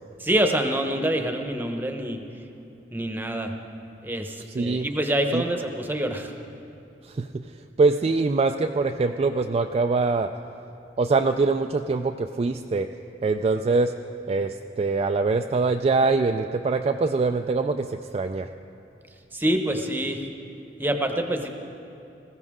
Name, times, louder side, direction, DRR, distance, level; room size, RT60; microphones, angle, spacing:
voice 1, 0.2-2.2 2.9-3.5 4.0-6.3 19.3-20.2 20.8-21.5, right 1 dB, 10° right, 5 dB, 0.9 m, -26 dB
voice 2, 4.5-4.9 5.3-5.4 7.0-7.4 7.8-10.3 11.0-12.9 13.2-13.9 14.3-18.5, right 3 dB, 35° right, 5 dB, 0.3 m, -23 dB
20.5 x 15.0 x 3.7 m, 2.7 s
head